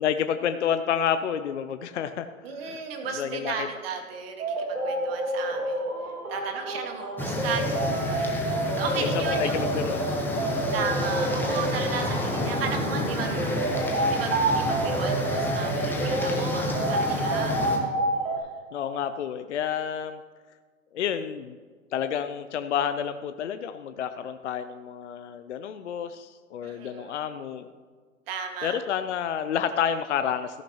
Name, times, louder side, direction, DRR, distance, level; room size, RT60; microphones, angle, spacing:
voice 1, 0.0-2.3 2.6-2.8 3.2-3.7 9.0-10.1 18.7-20.2 20.9-21.6 21.9-27.7 28.6-30.6, left 8 dB, 55° left, 10 dB, 0.6 m, -29 dB
voice 2, 2.4-5.9 6.3-9.6 10.7-17.7 18.4-18.5 26.6-27.1 28.3-28.8, right 6 dB, 45° right, 3 dB, 1.9 m, -35 dB
sound 1, 4.4-18.4, right 1 dB, 80° right, 2.2 m, -29 dB
sound 2, 7.2-17.8, left 1 dB, 5° left, 1.0 m, -30 dB
13.5 x 11.0 x 3.0 m, 1.6 s
figure-of-eight pair, 125°, 42 cm